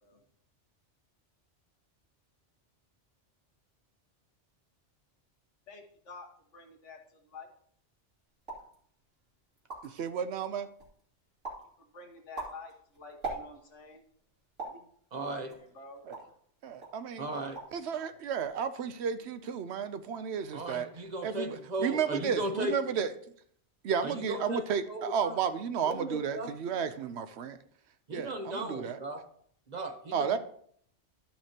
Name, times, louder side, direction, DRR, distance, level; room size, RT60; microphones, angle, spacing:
voice 1, 5.7-7.5 11.8-14.0 14.6-14.8 15.3-16.0, left 3 dB, 90° left, 3 dB, 1.6 m, -49 dB
sound 1, 8.4-8.7 9.3-9.4 9.5-10.1 10.5-11.0 11.4-11.7 12.1-13.8 14.6-14.9 15.5-16.4 16.8-17.0 17.3-17.8 18.1-18.6, right 3 dB, 90° right, 3.0 m, -41 dB
voice 2, 9.8-10.7 16.1-16.2 16.6-17.3 17.7-20.9 21.2-23.1 23.8-27.6 28.1-29.0 30.1-30.4, right 7 dB, 70° right, 10 dB, 0.8 m, -33 dB
voice 3, 15.1-15.5 17.2-17.6 20.5-22.8 24.0-25.4 25.8-26.5 28.1-29.2 29.7-30.4, right 1 dB, 40° right, 6 dB, 0.9 m, -36 dB
12.0 x 5.7 x 2.9 m, 0.62 s
omnidirectional pair, 1.2 m